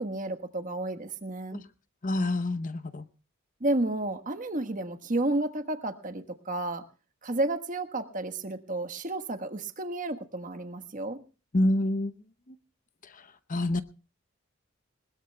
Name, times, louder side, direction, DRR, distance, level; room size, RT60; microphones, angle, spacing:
voice 1, 0.0-1.6 3.6-6.8 7.2-11.2, right 2 dB, 40° right, 8 dB, 1.3 m, -31 dB
voice 2, 2.0-3.1 11.5-12.1 12.5-12.6 13.0-13.8, left 1 dB, 40° left, 12 dB, 0.7 m, -28 dB
20.5 x 19.5 x 2.2 m, 0.35 s
head